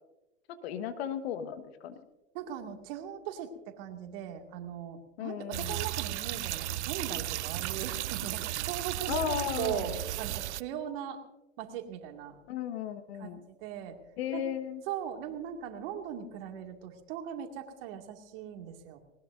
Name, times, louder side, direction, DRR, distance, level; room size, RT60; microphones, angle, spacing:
voice 1, 0.5-2.0 5.2-5.8 9.1-9.9 12.5-13.4 14.2-14.8, left 9 dB, 60° left, 10 dB, 1.5 m, -35 dB
voice 2, 2.3-11.2 11.6-12.4 13.2-14.0 14.3-14.4 14.9-19.0, right 9 dB, 50° right, 4 dB, 2.3 m, -39 dB
sound 1, 5.5-10.6, right 15 dB, 70° right, 0.5 m, -35 dB
20.0 x 20.0 x 2.6 m, 1.0 s
hypercardioid pair, 105°, 36 cm